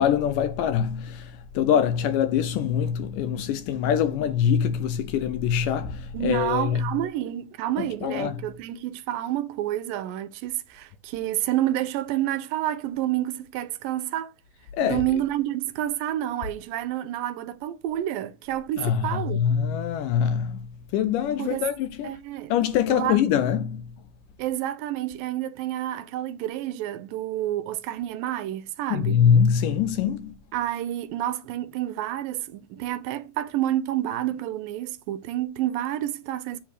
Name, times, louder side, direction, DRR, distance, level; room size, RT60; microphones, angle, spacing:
voice 1, 0.0-7.1 7.8-8.5 14.7-15.2 18.8-22.2 22.5-23.9 28.9-30.3, left 8 dB, 75° left, 2.1 m, -24 dB
voice 2, 6.1-14.3 14.8-19.5 21.4-21.7 22.0-22.5 22.9-23.2 24.4-29.2 30.5-36.6, right 13 dB, 85° right, 2.2 m, -29 dB
7.8 x 3.4 x 6.5 m
omnidirectional pair, 4.2 m